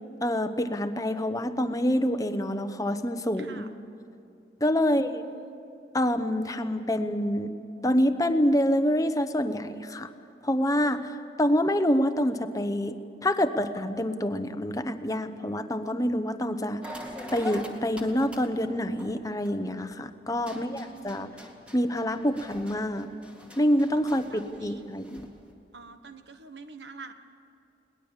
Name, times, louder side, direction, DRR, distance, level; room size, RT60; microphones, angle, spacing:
voice 1, 0.2-3.7 4.6-5.2 5.9-7.5 7.8-10.1 10.4-11.1 11.4-16.8 17.3-21.3 21.7-23.1 23.6-25.3, equal, 20° left, 9 dB, 0.9 m, -26 dB
voice 2, 3.4-3.7 4.7-5.6 20.4-21.3 24.1-24.8 25.7-27.1, right 4 dB, 75° right, 8 dB, 1.4 m, -47 dB
sound 1, 16.8-19.9 20.3-25.4, left 1 dB, 5° right, 2.1 m, -43 dB
22.0 x 19.0 x 7.4 m, 2.8 s
head